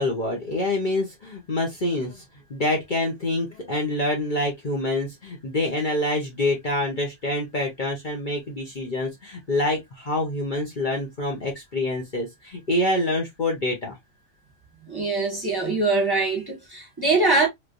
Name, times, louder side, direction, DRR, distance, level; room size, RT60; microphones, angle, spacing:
voice 1, 0.0-2.2 2.5-13.9, left 1 dB, 40° left, 0.9 m, -26 dB
voice 2, 14.9-17.5, right 3 dB, 20° right, 1.2 m, -23 dB
3.3 x 3.0 x 2.4 m
omnidirectional pair, 1.4 m